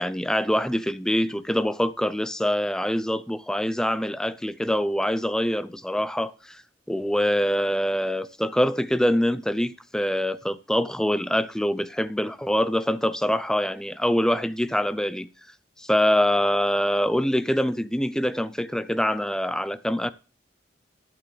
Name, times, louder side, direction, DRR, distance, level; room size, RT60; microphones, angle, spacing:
voice 1, 0.0-6.6 6.9-15.3 15.8-20.1, equal, 5° left, 0.5 m, -24 dB
12.0 x 9.2 x 3.3 m
head